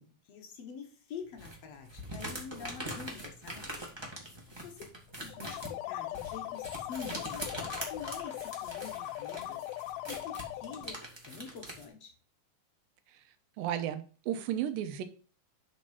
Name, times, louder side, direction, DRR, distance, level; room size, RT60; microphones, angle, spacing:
voice 1, 0.0-3.7 4.6-11.0 11.3-12.1, left 6 dB, 60° left, 2 dB, 1.9 m, -47 dB
sound 1, 1.4-11.8, right 1 dB, 20° right, 0.6 m, -43 dB
sound 2, 5.3-11.0, left 15 dB, 90° left, 2.4 m, -40 dB
voice 2, 13.6-15.0, right 10 dB, 80° right, 9 dB, 2.4 m, -33 dB
7.6 x 4.3 x 5.8 m, 0.38 s
omnidirectional pair, 4.2 m